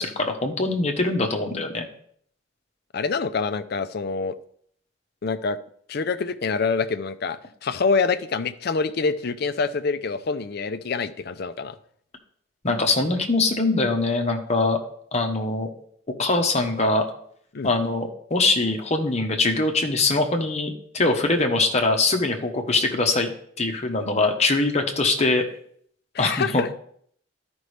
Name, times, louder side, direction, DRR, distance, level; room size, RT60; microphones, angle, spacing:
voice 1, 0.0-1.9 12.6-14.8 15.1-15.7 16.2-17.0 17.6-23.3 23.6-25.4 26.2-26.7, left 3 dB, 35° left, 4 dB, 1.1 m, -22 dB
voice 2, 2.9-4.4 5.2-5.6 5.9-11.8 17.5-17.7 26.1-26.8, left 4 dB, 55° left, 12 dB, 0.5 m, -26 dB
12.5 x 5.3 x 3.3 m, 0.63 s
head